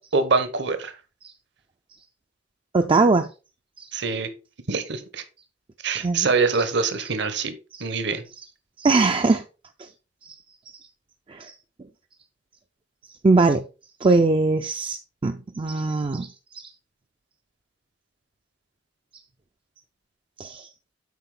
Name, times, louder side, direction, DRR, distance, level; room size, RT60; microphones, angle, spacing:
voice 1, 0.1-0.9 3.9-4.3 4.7-5.2 5.8-7.5 7.8-8.2, right 4 dB, 65° right, 1.0 m, -24 dB
voice 2, 2.7-3.3 3.8-3.9 6.0-6.3 8.8-9.4 9.8-9.9 10.3-10.4 11.3-11.5 13.2-13.6 14.0-16.3 16.5-16.7 20.4-20.7, right 3 dB, 30° right, 0.4 m, -21 dB
8.1 x 4.9 x 3.8 m
head